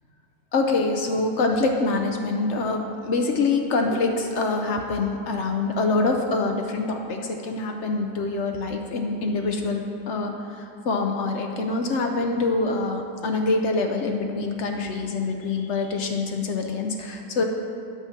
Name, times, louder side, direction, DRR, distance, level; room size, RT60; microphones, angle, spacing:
voice 1, 0.5-10.3 10.6-17.4, left 3 dB, 65° left, 3 dB, 0.7 m, -25 dB
8.9 x 6.0 x 5.8 m, 2.6 s
omnidirectional pair, 1.9 m